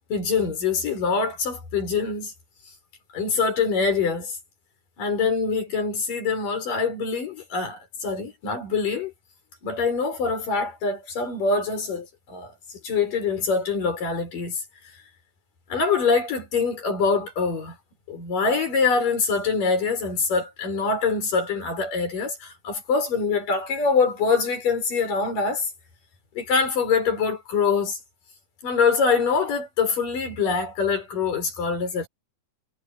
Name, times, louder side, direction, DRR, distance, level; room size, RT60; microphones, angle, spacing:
voice 1, 0.1-2.3 3.1-4.4 5.0-9.1 9.6-12.5 12.8-14.6 15.7-17.8 18.1-25.7 26.4-28.0 28.6-32.1, left 5 dB, 60° left, 7.3 m, -24 dB
omnidirectional pair, 4.4 m